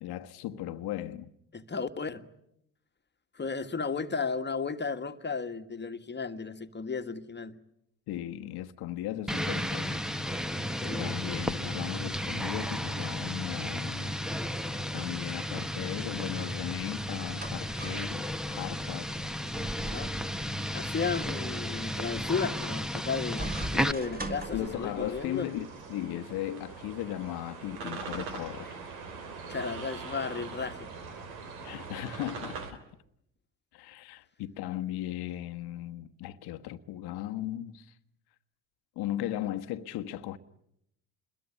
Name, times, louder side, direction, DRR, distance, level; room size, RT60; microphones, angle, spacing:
voice 1, 0.0-1.3 8.1-10.0 10.6-14.1 14.6-19.1 24.5-28.8 31.6-32.8 33.7-37.9 39.0-40.4, left 13 dB, 65° left, 1.3 m, -37 dB
voice 2, 1.5-2.2 3.4-7.6 10.8-11.1 19.9-20.1 20.7-25.5 29.5-30.9, left 5 dB, 25° left, 1.7 m, -34 dB
sound 1, 9.3-23.9, equal, ahead, 1.2 m, -33 dB
sound 2, 16.9-25.2, right 1 dB, 20° right, 4.1 m, -43 dB
sound 3, 23.7-32.7, right 4 dB, 85° right, 2.9 m, -42 dB
27.5 x 22.0 x 9.8 m
hypercardioid pair, 65°, 40 cm